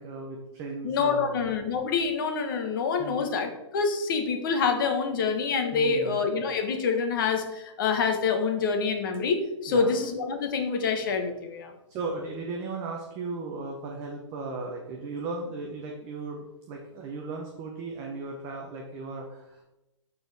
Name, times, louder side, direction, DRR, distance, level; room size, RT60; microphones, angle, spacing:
voice 1, 0.0-1.4 3.0-3.2 5.7-6.2 9.7-9.9 11.9-19.6, right 3 dB, 20° right, 1 dB, 0.8 m, -36 dB
voice 2, 0.8-11.7, left 5 dB, 45° left, 5 dB, 1.3 m, -26 dB
12.5 x 4.4 x 3.5 m, 0.95 s
hypercardioid pair, 165°, 16 cm